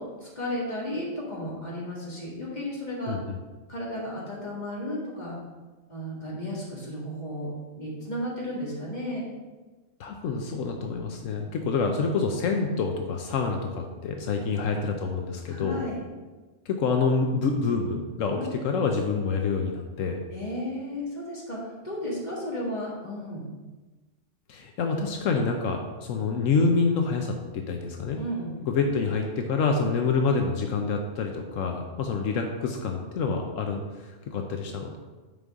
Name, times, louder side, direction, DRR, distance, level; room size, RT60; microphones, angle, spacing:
voice 1, 0.0-3.2 3.7-5.4 5.9-7.5 7.8-9.3 14.4-14.5 15.5-16.0 18.3-18.5 20.3-23.4 28.1-28.5, left 1 dB, 35° left, -5 dB, 2.1 m, -34 dB
voice 2, 3.1-3.4 10.0-15.8 16.7-20.2 24.5-28.2 28.6-35.0, left 4 dB, 85° left, 3 dB, 1.1 m, -27 dB
9.2 x 5.4 x 3.6 m, 1.3 s
omnidirectional pair, 1.3 m